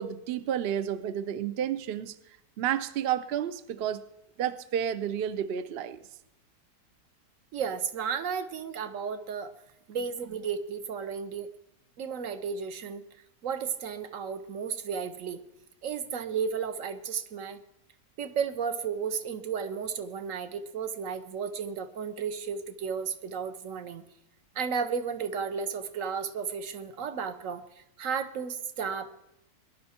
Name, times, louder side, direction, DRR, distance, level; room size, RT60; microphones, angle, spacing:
voice 1, 0.0-2.1 2.6-4.0 4.4-6.0, right 9 dB, 75° right, 13 dB, 0.5 m, -31 dB
voice 2, 7.5-9.5 9.9-11.5 12.0-13.0 13.4-15.4 15.8-17.6 18.2-24.0 24.5-29.1, right 6 dB, 55° right, 11 dB, 1.2 m, -33 dB
20.5 x 11.0 x 4.3 m, 0.87 s
omnidirectional pair, 1.8 m